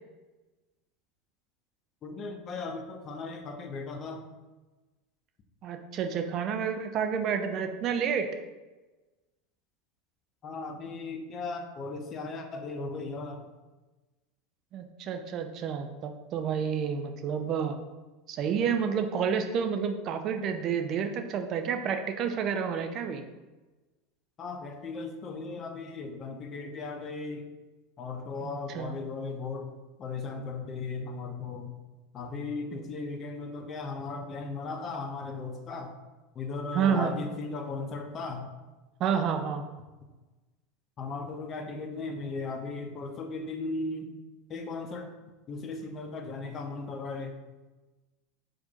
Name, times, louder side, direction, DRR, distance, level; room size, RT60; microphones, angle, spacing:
voice 1, 2.0-4.2 10.4-13.5 24.4-27.5 28.0-29.7 30.0-31.7 32.1-35.9 36.3-38.5 41.0-44.1 44.5-45.1 45.5-47.4, left 3 dB, 35° left, 5 dB, 0.6 m, -37 dB
voice 2, 5.6-8.3 14.7-17.8 18.3-23.2 28.4-28.9 32.7-32.9 36.7-37.1 39.0-39.6, right 7 dB, 45° right, 6 dB, 0.5 m, -30 dB
4.2 x 2.5 x 4.1 m, 1.2 s
figure-of-eight pair, 80°, 0 cm